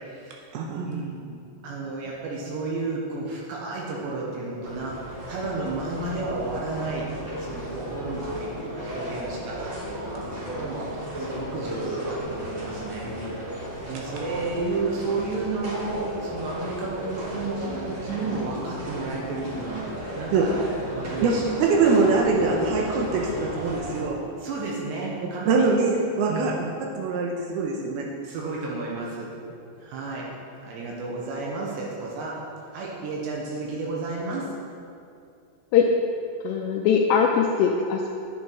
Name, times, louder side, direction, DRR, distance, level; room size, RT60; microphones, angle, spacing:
voice 1, 0.0-0.4 0.8-5.0 5.3-7.1 7.4-13.1 13.9-20.6 20.9-21.5 24.4-25.7 26.3-26.5 28.2-29.3 29.8-30.3 30.6-32.4 32.7-34.5, right 3 dB, 75° right, -3 dB, 3.2 m, -32 dB
voice 2, 0.5-1.0 20.3-20.5 21.2-21.3 21.6-24.2 25.5-26.5 26.8-28.1, right 4 dB, 90° right, -1 dB, 2.2 m, -23 dB
sound 1, 4.6-24.1, equal, 35° right, 2.3 m, -34 dB
voice 3, 36.4-38.1, left 7 dB, 85° left, 1 dB, 2.4 m, -21 dB
9.8 x 9.4 x 4.6 m, 2.5 s
omnidirectional pair, 5.5 m